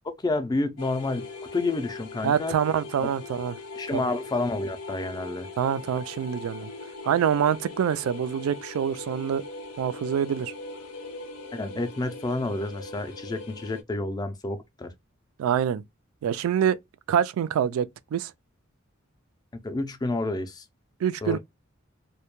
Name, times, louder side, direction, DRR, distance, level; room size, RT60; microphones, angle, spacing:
voice 1, 0.0-2.6 3.0-3.1 3.7-5.5 11.5-14.9 19.6-20.7 21.2-21.4, left 2 dB, 20° left, 0.3 m, -29 dB
sound 1, 0.8-13.8, left 3 dB, 85° left, 0.5 m, -40 dB
voice 2, 2.2-3.5 3.9-4.0 5.6-6.7 7.1-9.4 9.8-10.5 15.4-15.8 16.2-16.8 17.1-18.3 21.0-21.4, right 8 dB, 90° right, 0.3 m, -25 dB
2.1 x 2.1 x 2.9 m
head